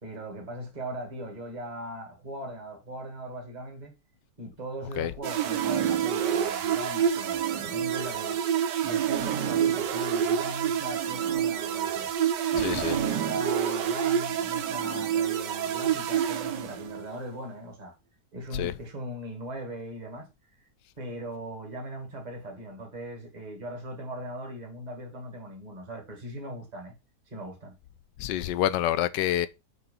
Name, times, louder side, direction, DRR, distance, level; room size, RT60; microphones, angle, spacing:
voice 1, 0.0-3.9 4.4-8.4 8.8-12.1 12.5-17.9 18.3-20.3 21.0-26.9 27.3-27.7, right 1 dB, 25° right, 2.0 m, -39 dB
sound 1, 5.2-17.1, right 9 dB, 75° right, 1.4 m, -27 dB
voice 2, 12.6-13.0 18.5-18.7 28.2-29.5, left 12 dB, 80° left, 1.2 m, -27 dB
6.6 x 4.3 x 5.6 m
omnidirectional pair, 1.9 m